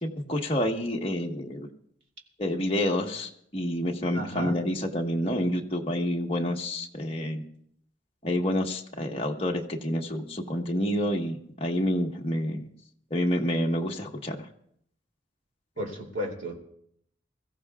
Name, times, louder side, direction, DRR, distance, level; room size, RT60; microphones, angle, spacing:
voice 1, 0.0-1.7 2.4-7.4 8.2-12.7 13.1-14.5, left 1 dB, 30° left, 0 dB, 1.3 m, -28 dB
voice 2, 4.1-4.5 15.8-16.6, equal, 85° right, 0 dB, 3.0 m, -33 dB
23.0 x 15.0 x 2.4 m, 0.69 s
head